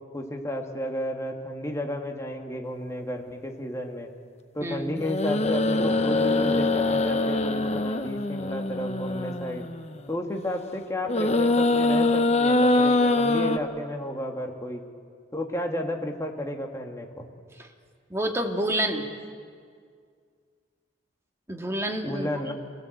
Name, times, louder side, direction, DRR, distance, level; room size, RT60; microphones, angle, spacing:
voice 1, 0.1-4.1 4.5-9.7 10.1-14.8 15.3-17.3 22.0-22.5, left 1 dB, 15° left, 2 dB, 2.1 m, -32 dB
voice 2, 4.6-5.0 17.6-17.7 18.1-19.0 21.5-22.3, right 1 dB, 15° right, 2 dB, 2.1 m, -28 dB
sound 1, 5.0-9.8 11.0-13.6, left 2 dB, 35° left, 1.0 m, -23 dB
27.5 x 17.0 x 8.0 m, 2.1 s
head